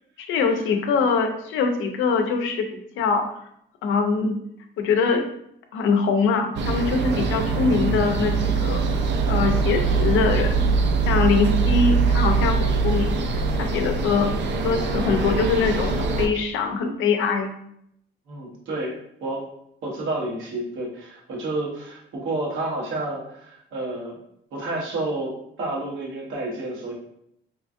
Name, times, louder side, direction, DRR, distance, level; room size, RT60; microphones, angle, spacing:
voice 1, 0.2-3.3 3.8-4.4 4.8-5.3 5.7-8.8 9.3-10.6 11.1-14.3 14.6-17.5, left 5 dB, 80° left, 5 dB, 0.5 m, -23 dB
sound 1, 6.5-16.3, right 4 dB, 65° right, 0.4 m, -22 dB
voice 2, 18.3-19.5 19.8-24.1 24.5-26.9, right 2 dB, 80° right, -3 dB, 1.0 m, -30 dB
2.9 x 2.5 x 2.4 m, 0.74 s
cardioid pair, 90°, 20 cm